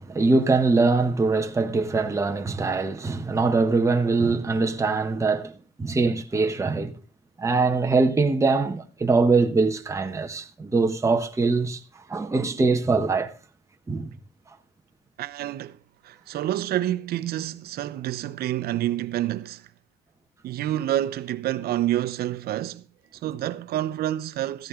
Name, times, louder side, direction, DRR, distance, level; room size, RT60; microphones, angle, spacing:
voice 1, 0.0-7.0 7.4-11.8 12.1-13.3 13.9-14.1, right 3 dB, 15° right, 1.1 m, -23 dB
voice 2, 15.2-15.8 16.0-19.7 20.4-22.8 23.2-24.7, right 13 dB, 65° right, 0.9 m, -28 dB
14.5 x 11.5 x 3.7 m
cardioid pair, 110°, 17 cm